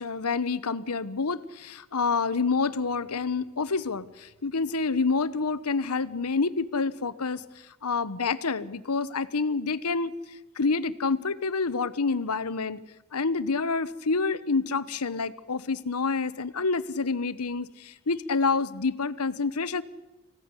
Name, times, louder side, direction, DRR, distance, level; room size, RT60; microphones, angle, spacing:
voice 1, 0.0-12.8 13.1-19.8, left 4 dB, 90° left, 15 dB, 1.0 m, -28 dB
25.5 x 16.0 x 9.7 m, 1.1 s
head